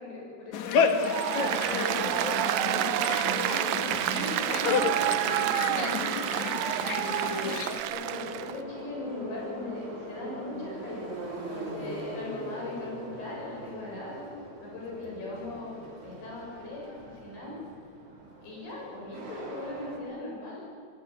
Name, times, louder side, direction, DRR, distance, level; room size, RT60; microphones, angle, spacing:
voice 1, 0.0-6.1 6.9-14.3 14.6-17.6 18.4-20.6, left 2 dB, 85° left, -3 dB, 9.8 m, -39 dB
sound 1, 0.5-7.8, left 6 dB, 65° left, 2.0 m, -31 dB
Applause, 1.0-8.6, right 13 dB, 85° right, 2.0 m, -29 dB
Subway metro underground, 2.9-20.0, right 2 dB, 35° right, 4.5 m, -43 dB
24.0 x 23.5 x 9.0 m, 2.3 s
omnidirectional pair, 5.0 m